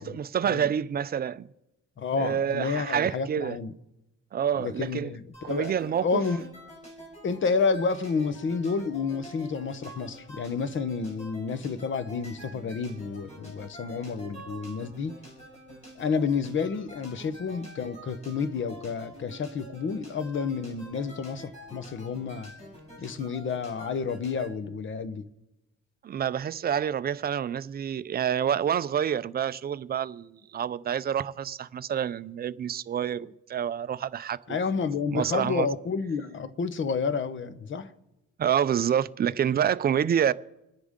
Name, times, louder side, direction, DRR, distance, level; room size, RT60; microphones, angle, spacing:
voice 1, 0.0-1.5 2.2-3.6 4.3-5.1 5.4-6.2 26.0-34.6 35.1-35.7 38.4-40.3, right 9 dB, 30° right, 0.4 m, -28 dB
voice 2, 2.0-3.7 4.6-5.7 6.0-6.4 7.2-15.1 16.0-22.5 23.0-25.3 34.5-37.9, left 5 dB, 40° left, 1.0 m, -30 dB
sound 1, 5.3-24.5, equal, 20° left, 5.4 m, -47 dB
26.5 x 10.0 x 3.7 m
cardioid pair, 130°, 30 cm